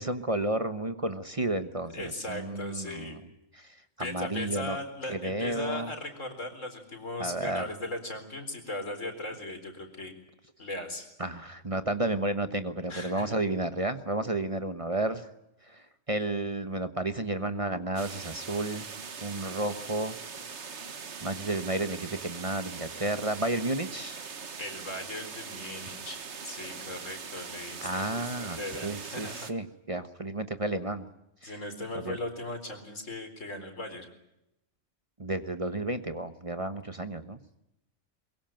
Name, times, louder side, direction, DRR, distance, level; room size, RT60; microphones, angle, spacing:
voice 1, 0.0-3.2 3.5-4.8 5.1-5.9 7.2-7.6 11.2-15.3 15.7-18.9 19.2-20.2 21.2-24.2 27.8-31.1 31.4-31.5 31.9-32.2 35.2-37.4, right 2 dB, 30° right, 10 dB, 1.1 m, -32 dB
voice 2, 1.9-3.2 4.0-10.1 10.6-11.1 12.9-13.4 24.6-26.2 26.4-29.5 31.4-34.1, left 1 dB, 80° left, 6 dB, 4.6 m, -38 dB
sound 1, 18.0-29.5, right 5 dB, 60° right, 1.6 m, -41 dB
23.0 x 23.0 x 9.0 m, 0.86 s
omnidirectional pair, 1.3 m